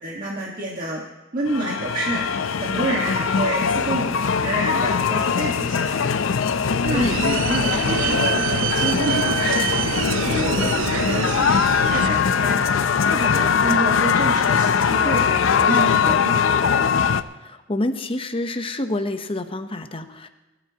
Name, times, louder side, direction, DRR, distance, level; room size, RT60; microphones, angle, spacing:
voice 1, 0.0-1.0 1.3-2.2 2.6-4.1 4.4-6.1 6.8-9.6 10.1-12.6 13.1-16.4, right 2 dB, 45° right, -2 dB, 1.5 m, -28 dB
sound 1, 1.5-17.2, left 6 dB, 85° left, 0.5 m, -21 dB
sound 2, 6.8-12.1, right 11 dB, 75° right, 0.3 m, -26 dB
voice 2, 17.3-20.3, left 1 dB, 30° left, 8 dB, 0.8 m, -27 dB
21.5 x 12.5 x 2.9 m, 1.1 s
head